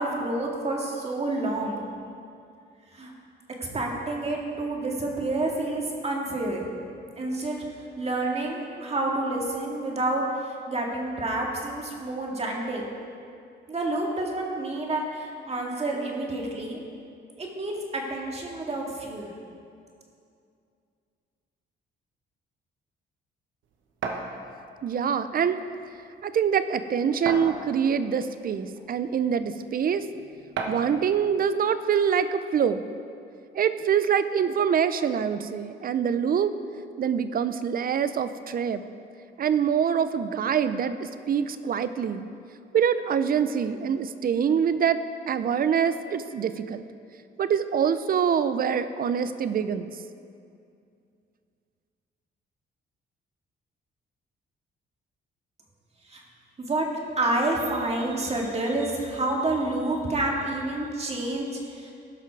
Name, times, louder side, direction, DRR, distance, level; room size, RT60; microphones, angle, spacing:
voice 1, 0.0-1.8 2.9-3.1 3.6-6.6 7.2-7.6 8.0-12.9 13.7-16.8 17.4-19.3 56.1-56.2 56.6-56.9 57.2-61.9, right 2 dB, 30° right, -1 dB, 2.0 m, -29 dB
sound 1, 24.0-24.3 25.4-25.5 26.0-26.1 27.3-27.9 28.7-28.8 30.6-30.9, right 4 dB, 75° right, 1.1 m, -31 dB
voice 2, 24.8-25.6 26.2-30.1 30.7-32.8 33.5-36.5 37.0-38.8 39.4-42.3 42.7-45.0 45.3-46.8 47.4-49.9, right 7 dB, 45° right, 12 dB, 0.6 m, -25 dB
16.5 x 5.8 x 4.7 m, 2.4 s
cardioid pair, 90°, 20 cm